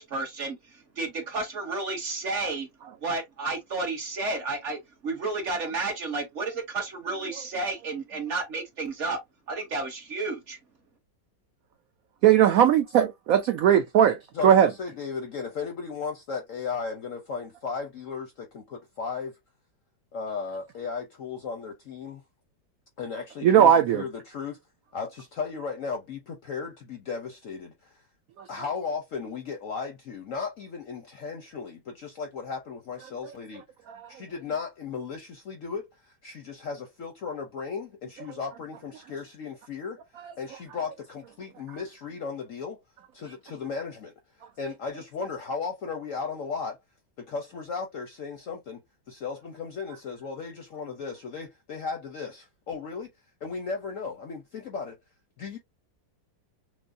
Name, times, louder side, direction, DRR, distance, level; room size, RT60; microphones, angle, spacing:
voice 1, 0.0-2.7 3.0-9.2 9.5-10.6, right 3 dB, 50° right, 1.1 m, -32 dB
voice 2, 12.2-14.2 14.4-14.7 23.4-24.0 28.4-28.5 33.9-34.1, right 9 dB, 85° right, 0.7 m, -19 dB
voice 3, 14.3-19.3 20.1-22.2 23.0-24.6 24.9-28.0 28.5-33.6 34.1-40.0 40.4-42.8 43.1-44.1 44.6-46.8 47.2-48.8 49.1-53.1 53.4-55.0 55.4-55.6, left 5 dB, 65° left, 0.8 m, -35 dB
6.1 x 2.1 x 2.5 m
omnidirectional pair, 2.0 m